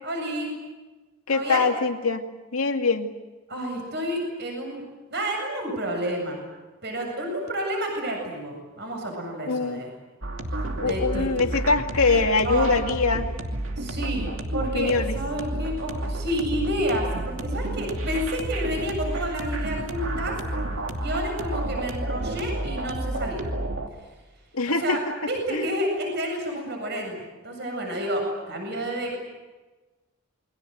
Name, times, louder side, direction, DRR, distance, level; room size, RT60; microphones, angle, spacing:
voice 1, 0.0-0.5 1.3-1.6 3.5-4.8 5.1-6.4 6.8-9.9 10.8-11.5 12.4-12.7 13.8-20.4 21.0-23.4 24.7-29.2, equal, 50° right, 2 dB, 7.7 m, -30 dB
voice 2, 1.3-2.2 2.5-3.1 9.5-9.8 10.8-13.3 14.7-15.1 24.5-25.0 25.5-25.6, left 4 dB, 85° left, 5 dB, 2.4 m, -23 dB
sound 1, 10.2-23.9, right 1 dB, 65° right, 2.7 m, -30 dB
28.5 x 22.5 x 8.1 m, 1.2 s
head